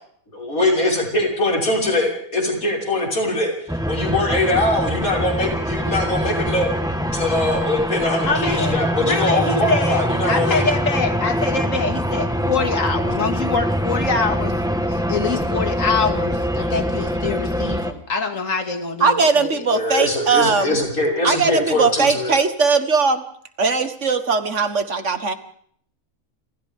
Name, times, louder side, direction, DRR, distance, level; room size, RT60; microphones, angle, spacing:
voice 1, 0.3-3.5 3.9-6.7 7.1-10.6 17.6-17.7 19.7-22.3, left 2 dB, 85° left, -1 dB, 6.4 m, -22 dB
sound 1, 3.7-17.9, equal, 5° right, 1.3 m, -23 dB
voice 2, 8.3-14.6 14.9-19.7, left 4 dB, 65° left, 5 dB, 2.7 m, -24 dB
voice 3, 19.0-20.8 21.2-23.2 23.6-25.3, right 4 dB, 60° right, 9 dB, 1.8 m, -19 dB
29.0 x 27.0 x 3.7 m, 0.64 s
omnidirectional pair, 1.4 m